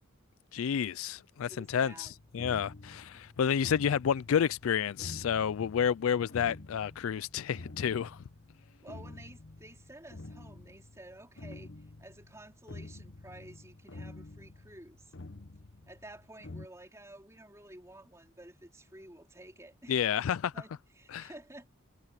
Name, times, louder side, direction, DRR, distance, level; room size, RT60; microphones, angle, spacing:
voice 1, 0.5-8.2 19.9-20.5 21.1-21.3, left 8 dB, 75° left, 0.4 m, -30 dB
voice 2, 1.5-2.2 3.1-3.3 8.8-15.1 15.9-20.0 20.5-21.8, right 1 dB, 15° right, 4.0 m, -52 dB
sound 1, 2.0-16.7, left 2 dB, 55° left, 1.1 m, -49 dB
head